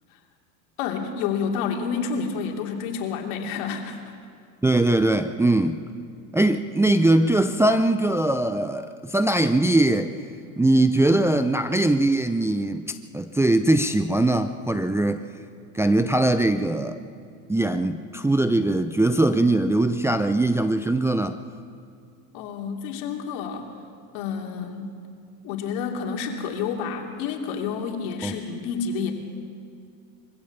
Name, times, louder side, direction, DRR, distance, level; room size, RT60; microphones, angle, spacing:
voice 1, 0.8-4.0 22.3-23.7 24.1-24.9 25.4-29.1, left 6 dB, 70° left, 2 dB, 3.0 m, -29 dB
voice 2, 4.6-5.8 6.3-10.1 10.6-12.8 13.1-15.3 15.7-17.0 17.5-21.4 28.2-28.3, right 2 dB, 5° right, 8 dB, 0.6 m, -21 dB
23.0 x 16.0 x 7.2 m, 2.3 s
supercardioid pair, 105°, 42 cm